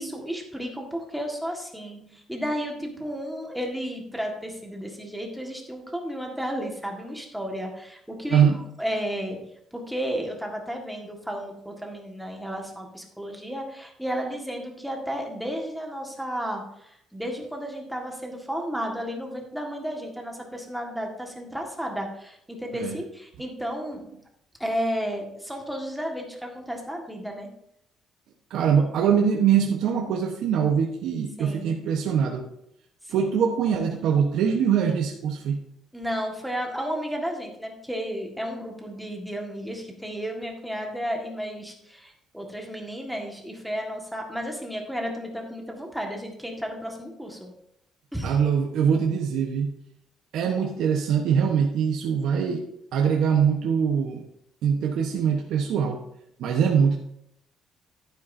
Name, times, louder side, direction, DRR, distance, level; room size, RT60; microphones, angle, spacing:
voice 1, 0.0-9.4 9.7-24.0 24.6-27.5 31.4-31.7 33.2-33.3 35.9-47.5 48.1-48.4, equal, ahead, 1 dB, 1.7 m, -33 dB
voice 2, 8.3-8.6 22.7-23.0 28.5-32.4 33.1-35.6 48.2-49.7 50.3-52.6 52.9-54.2 54.6-56.0 56.4-57.0, right 7 dB, 70° right, 1 dB, 1.1 m, -23 dB
11.5 x 9.3 x 2.7 m, 0.75 s
cardioid pair, 150°, 0 cm